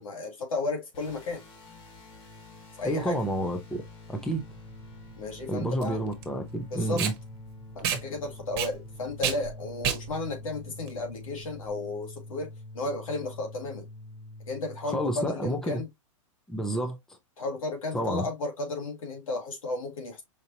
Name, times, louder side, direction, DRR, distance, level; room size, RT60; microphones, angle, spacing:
voice 1, 0.0-1.4 2.8-3.2 5.2-6.0 6.7-7.1 7.7-13.9 14.5-15.9 17.4-20.2, left 2 dB, 85° left, 2.2 m, -33 dB
sound 1, 0.9-15.3, left 2 dB, 30° left, 1.4 m, -46 dB
voice 2, 2.8-3.8 4.1-4.4 5.5-7.1 14.9-15.8 16.5-17.0 17.9-18.2, right 1 dB, 5° left, 0.6 m, -29 dB
Packing tape duct tape, 4.2-11.7, right 8 dB, 45° right, 1.2 m, -34 dB
5.2 x 2.8 x 2.7 m
hypercardioid pair, 150°, 17 cm